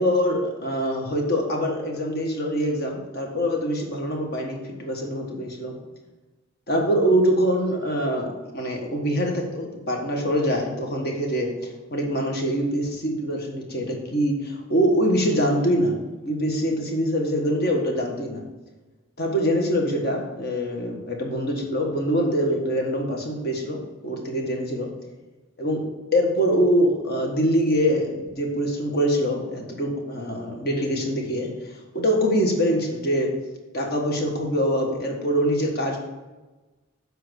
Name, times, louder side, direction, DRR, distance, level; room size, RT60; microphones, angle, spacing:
voice 1, 0.0-5.7 6.7-11.5 11.9-15.9 16.2-18.4 19.2-23.8 24.0-24.9 25.6-25.8 26.1-33.3 33.7-36.0, equal, 45° left, 1 dB, 1.4 m, -24 dB
7.6 x 4.8 x 6.3 m, 1.2 s
head